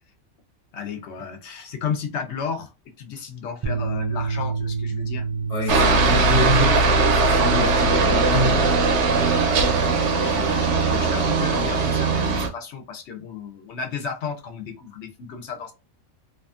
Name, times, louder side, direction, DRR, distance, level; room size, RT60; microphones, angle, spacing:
voice 1, 0.7-2.7 3.0-5.3 5.7-6.0 9.7-15.7, left 6 dB, 65° left, 0.8 m, -33 dB
sound 1, 3.6-9.9, right 5 dB, 50° right, 0.3 m, -29 dB
voice 2, 5.5-8.7, left 1 dB, 35° left, 1.0 m, -26 dB
Aircraft, 5.7-12.5, right 3 dB, 70° right, 0.9 m, -20 dB
2.7 x 2.4 x 2.4 m
omnidirectional pair, 1.3 m